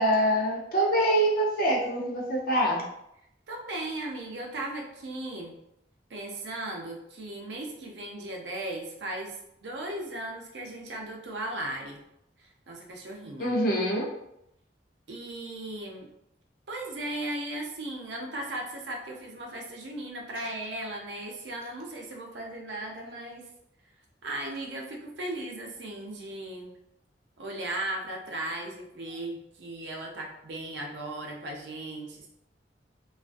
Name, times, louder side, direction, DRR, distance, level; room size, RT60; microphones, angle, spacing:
voice 1, 0.0-2.8 13.4-14.1, right 1 dB, 55° left, -1 dB, 0.6 m, -25 dB
voice 2, 3.5-5.6 6.1-12.0 12.4-13.8 15.1-16.1 16.7-23.5 24.2-26.7 27.4-32.3, right 1 dB, 75° right, 1 dB, 0.5 m, -37 dB
2.4 x 2.3 x 2.4 m, 0.79 s
head